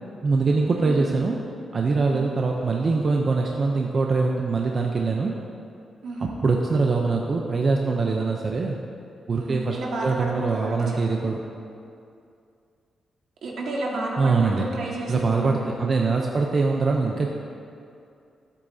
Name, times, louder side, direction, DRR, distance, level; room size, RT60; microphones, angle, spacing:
voice 1, 0.2-1.4 1.7-5.3 6.4-8.8 9.3-11.4 14.2-14.7 15.1-17.4, right 4 dB, 35° right, 0 dB, 0.5 m, -23 dB
voice 2, 0.8-1.2 2.0-2.2 6.0-6.3 9.3-11.3 13.4-15.6, right 2 dB, 70° right, -2 dB, 1.6 m, -32 dB
14.0 x 8.4 x 2.7 m, 2.4 s
wide cardioid pair, 170°, 0 cm